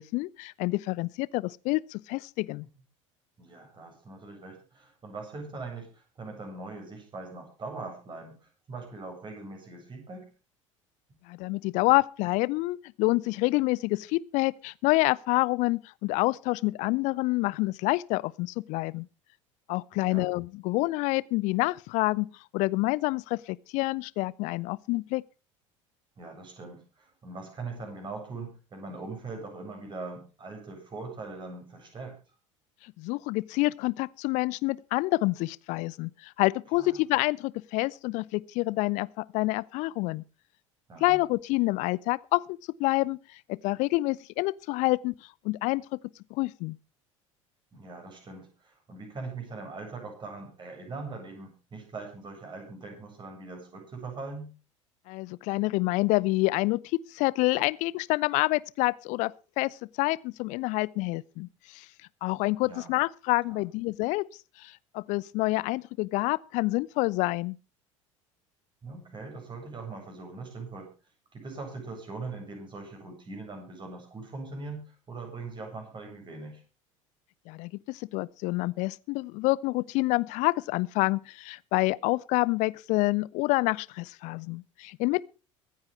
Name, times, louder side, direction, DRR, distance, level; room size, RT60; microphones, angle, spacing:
voice 1, 0.0-2.7 11.3-19.1 19.7-22.3 22.5-25.2 32.8-40.2 41.0-45.1 45.4-46.0 46.3-46.8 55.1-61.9 62.2-64.2 64.6-67.6 77.5-85.3, left 22 dB, 50° left, 0.7 m, -28 dB
voice 2, 3.4-10.3 19.9-20.3 26.2-32.2 36.8-37.0 40.9-41.2 47.7-54.5 62.6-62.9 63.5-63.6 68.8-70.9 71.3-76.6, right 3 dB, 30° right, 7.9 m, -41 dB
23.5 x 9.8 x 3.4 m
figure-of-eight pair, 70°, 17 cm